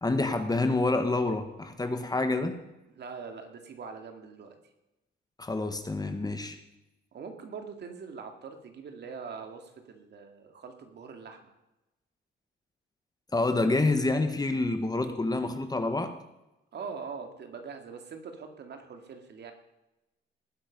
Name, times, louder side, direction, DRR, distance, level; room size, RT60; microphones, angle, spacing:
voice 1, 0.0-2.5 5.4-6.6 13.3-16.1, left 2 dB, 20° left, 8 dB, 1.5 m, -27 dB
voice 2, 2.9-4.6 7.1-11.5 16.7-19.5, right 5 dB, 60° right, 5 dB, 2.4 m, -43 dB
19.0 x 10.0 x 5.4 m, 0.95 s
cardioid pair, 90°, 20 cm